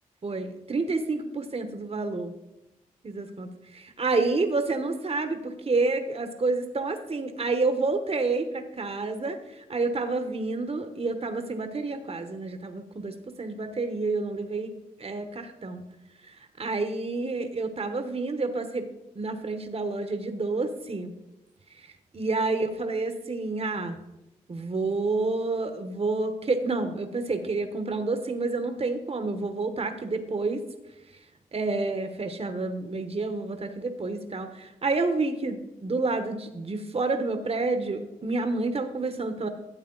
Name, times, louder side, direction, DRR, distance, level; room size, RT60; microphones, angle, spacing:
voice 1, 0.2-2.3 3.0-14.7 15.0-15.8 16.2-18.9 19.1-21.1 21.8-21.9 22.1-24.0 24.5-30.6 31.5-39.5, right 3 dB, 40° right, 8 dB, 1.1 m, -29 dB
12.5 x 8.2 x 3.9 m, 0.95 s
supercardioid pair, 45°, 15 cm